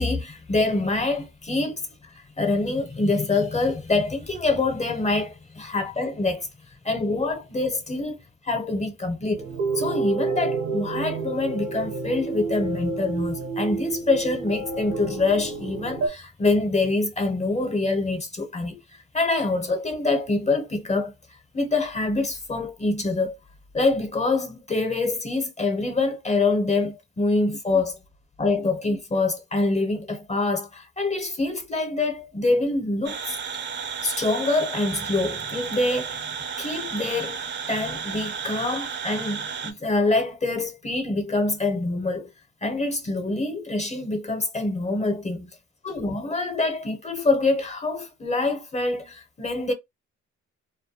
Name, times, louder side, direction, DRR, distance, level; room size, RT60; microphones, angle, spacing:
voice 1, 0.0-6.5 6.8-8.2 8.4-9.4 9.8-21.1 21.5-23.3 23.7-28.0 28.4-33.4 34.0-36.2 36.6-42.3 42.6-45.5 45.8-49.7, left 3 dB, 25° left, 0.6 m, -25 dB
sound 1, 9.4-16.1, right 3 dB, 70° right, 0.8 m, -29 dB
sound 2, 33.1-39.7, right 6 dB, 40° right, 0.5 m, -33 dB
2.2 x 2.2 x 2.7 m
cardioid pair, 90°, 30 cm